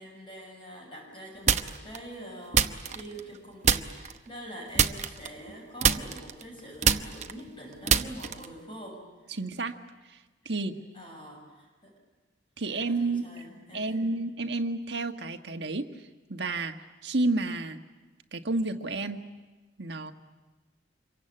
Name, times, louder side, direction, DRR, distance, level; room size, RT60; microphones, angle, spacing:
voice 1, 0.0-9.4 10.4-10.5 10.9-11.9 12.6-14.1, right 1 dB, 25° left, 0 dB, 7.0 m, -45 dB
sound 1, 1.5-2.0 2.5-3.4 3.6-4.2 4.7-5.5 5.8-8.6, right 7 dB, 40° right, 0.8 m, -25 dB
voice 2, 9.3-9.7 10.1-10.2 10.4-10.7 12.6-13.3 13.7-15.8 16.3-16.7 17.0-17.8 18.3-19.2 19.8-20.1, right 2 dB, 65° right, 5 dB, 1.5 m, -30 dB
27.0 x 23.5 x 8.8 m, 1.2 s
head